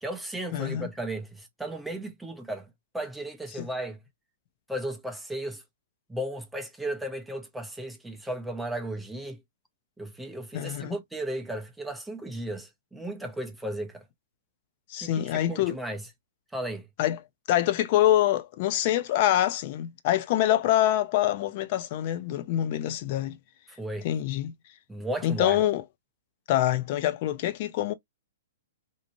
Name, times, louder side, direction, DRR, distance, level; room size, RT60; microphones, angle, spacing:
voice 1, 0.0-2.7 2.9-4.0 4.7-5.6 6.1-9.4 10.0-14.0 15.0-16.1 16.5-16.9 23.8-24.1 24.9-25.6, right 1 dB, 5° right, 0.6 m, -35 dB
voice 2, 0.5-0.9 3.6-3.7 10.5-10.9 14.9-15.8 17.0-17.2 17.5-23.4 24.0-24.5 25.2-25.8 26.5-27.9, left 12 dB, 45° left, 0.6 m, -25 dB
2.7 x 2.4 x 2.9 m
hypercardioid pair, 120°, 0 cm